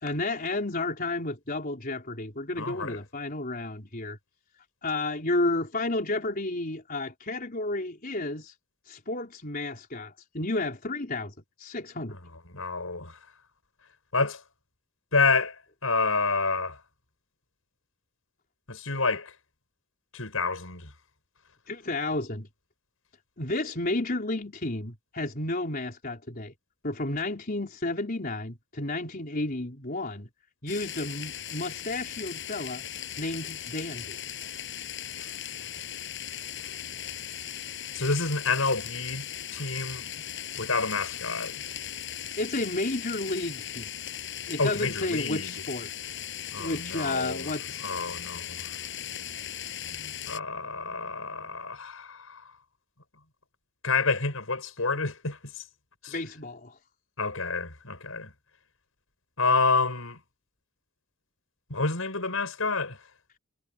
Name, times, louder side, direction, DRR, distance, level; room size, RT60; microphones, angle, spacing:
voice 1, 0.0-4.2 4.8-8.5 8.9-12.2 21.7-22.5 23.4-26.5 26.8-30.3 30.6-32.8 33.2-34.2 42.4-43.9 44.5-45.9 46.6-47.8 56.1-56.7, left 2 dB, 45° left, 4.3 m, -32 dB
voice 2, 2.6-3.0 12.5-13.2 14.1-14.4 15.1-15.5 15.8-16.8 18.7-19.3 20.1-20.9 37.9-39.2 39.5-40.1 40.6-41.6 44.6-45.5 46.5-47.5 47.8-48.7 50.3-52.4 53.8-55.6 56.0-56.1 57.2-58.3 59.4-60.2 61.7-63.0, left 4 dB, 75° left, 6.7 m, -28 dB
sound 1, 30.7-50.4, left 10 dB, 60° left, 7.5 m, -38 dB
head